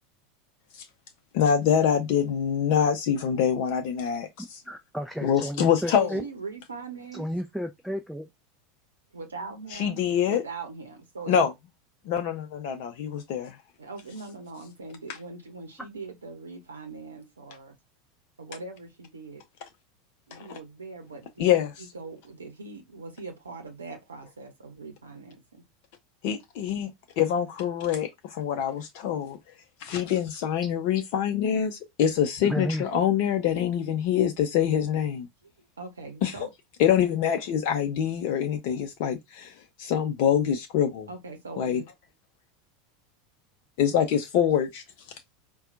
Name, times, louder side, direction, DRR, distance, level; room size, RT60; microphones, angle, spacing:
voice 1, 1.3-4.6 5.2-6.2 9.7-10.4 11.3-11.5 12.1-13.6 20.3-20.6 21.4-21.7 26.2-29.4 29.8-35.3 36.2-36.3 36.8-41.1 41.6-41.8 43.8-44.8, left 9 dB, 55° left, 0.6 m, -25 dB
voice 2, 4.7-6.2 7.1-8.3 32.5-32.8, equal, ahead, 0.4 m, -32 dB
voice 3, 5.9-7.3 9.1-11.4 13.8-17.7 18.4-19.4 20.3-25.6 35.4-36.5 41.1-41.9, right 4 dB, 80° right, 0.7 m, -41 dB
4.3 x 2.2 x 2.5 m
figure-of-eight pair, 80°, 0 cm